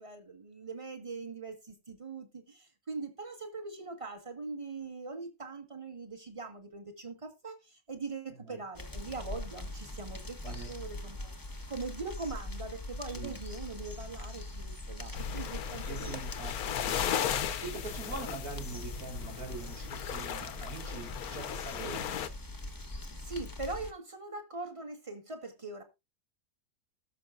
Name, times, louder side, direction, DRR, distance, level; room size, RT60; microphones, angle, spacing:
voice 1, 0.0-11.3 11.7-16.2 21.8-22.1 23.1-25.8, right 3 dB, 20° right, 1.6 m, -42 dB
sound 1, 8.7-23.9, left 2 dB, 15° left, 0.9 m, -42 dB
sound 2, 15.1-22.3, left 9 dB, 75° left, 1.2 m, -36 dB
voice 2, 15.9-22.1, right 4 dB, 70° right, 4.0 m, -44 dB
19.5 x 6.7 x 2.5 m
omnidirectional pair, 1.7 m